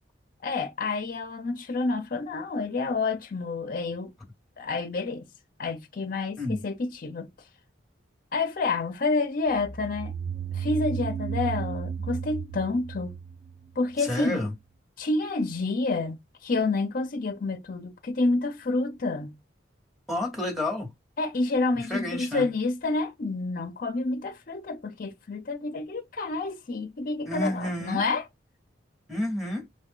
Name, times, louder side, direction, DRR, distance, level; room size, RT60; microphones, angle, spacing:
voice 1, 0.4-4.1 4.6-5.3 5.6-7.3 8.3-10.1 10.5-13.1 13.8-14.4 15.0-19.4 21.2-28.2, left 3 dB, 50° left, 0.5 m, -29 dB
sound 1, 9.6-14.1, right 7 dB, 60° right, 1.1 m, -33 dB
voice 2, 14.0-14.5 20.1-20.9 21.9-22.5 27.3-28.0 29.1-29.7, left 1 dB, ahead, 1.1 m, -30 dB
3.5 x 2.4 x 3.5 m
head